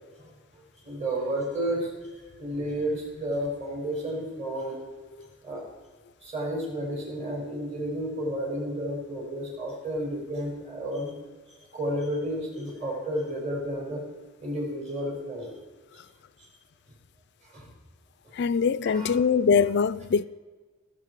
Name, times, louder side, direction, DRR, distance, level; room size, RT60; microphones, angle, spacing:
voice 1, 0.8-1.9 2.4-4.8 5.4-5.6 6.2-11.1 11.7-14.0 14.4-15.6 17.5-17.7 18.8-19.1, right 1 dB, 35° right, 4.8 m, -31 dB
voice 2, 18.4-20.2, left 5 dB, 55° left, 0.4 m, -22 dB
18.0 x 8.1 x 4.7 m
head